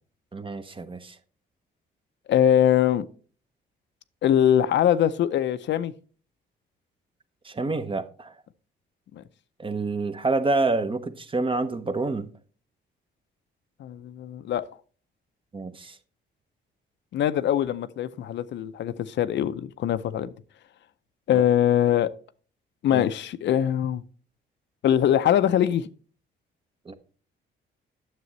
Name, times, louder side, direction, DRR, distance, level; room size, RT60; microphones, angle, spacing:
voice 1, 0.3-1.2 7.4-8.3 9.6-12.3 15.5-16.0 21.3-21.4 22.9-23.0 26.9-27.0, right 3 dB, 25° right, 0.8 m, -28 dB
voice 2, 2.3-3.1 4.2-5.9 9.1-9.2 13.8-14.6 17.1-20.3 21.3-22.1 22.8-24.0 24.8-25.9, left 10 dB, 65° left, 0.5 m, -22 dB
9.5 x 7.0 x 3.1 m
cardioid pair, 90°, 20 cm